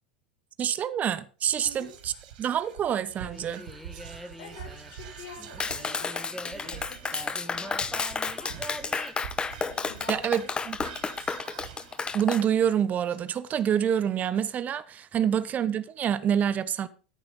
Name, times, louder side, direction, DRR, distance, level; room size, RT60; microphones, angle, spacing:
voice 1, 0.6-2.1 2.4-3.6 10.1-10.8 12.1-16.9, right 9 dB, 35° right, 0.9 m, -27 dB
Whispering, 1.4-13.9, right 9 dB, 65° right, 2.1 m, -46 dB
voice 2, 1.6-1.9 4.4-9.1 9.7-10.3 10.8-11.4 15.2-15.5, left 5 dB, 60° left, 5.6 m, -48 dB
sound 1, 3.2-9.1, equal, ahead, 1.3 m, -44 dB
Clapping, 5.6-12.4, left 5 dB, 20° left, 0.9 m, -31 dB
13.5 x 6.9 x 5.3 m
hypercardioid pair, 85°, 5 cm